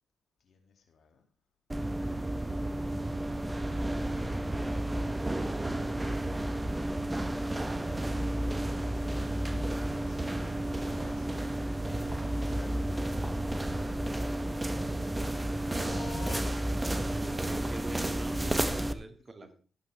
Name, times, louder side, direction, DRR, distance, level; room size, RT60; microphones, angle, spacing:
voice 1, 0.4-1.3 10.0-17.1 19.4-19.5, left 5 dB, 60° left, 4 dB, 2.4 m, -52 dB
sound 1, 1.7-18.9, right 1 dB, 20° right, 1.1 m, -32 dB
voice 2, 15.8-16.1 17.0-19.5, right 3 dB, 35° right, 7 dB, 2.1 m, -44 dB
17.0 x 8.6 x 3.4 m, 0.37 s
hypercardioid pair, 40°, 0 cm